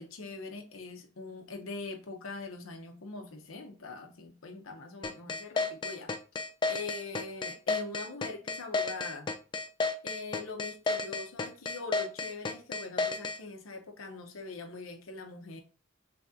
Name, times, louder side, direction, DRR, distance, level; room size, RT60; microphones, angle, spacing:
voice 1, 0.0-6.1 6.7-9.3 10.0-15.6, left 3 dB, 80° left, 0.8 m, -42 dB
sound 1, 5.0-13.4, left 3 dB, 25° left, 0.3 m, -31 dB
3.6 x 3.3 x 2.7 m
head